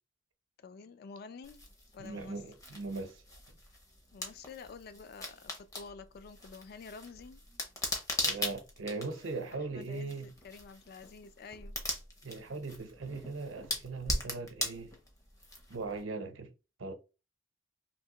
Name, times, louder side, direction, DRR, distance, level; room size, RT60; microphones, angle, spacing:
voice 1, 0.6-1.7 1.9-2.4 4.1-7.4 9.5-11.8, left 5 dB, 50° left, 0.3 m, -49 dB
sound 1, 1.4-16.0, left 1 dB, 15° left, 0.6 m, -40 dB
voice 2, 2.0-3.2 8.2-10.3 12.2-14.9 15.7-16.5 16.8-16.9, right 3 dB, 90° right, 0.7 m, -39 dB
3.3 x 2.8 x 2.9 m
head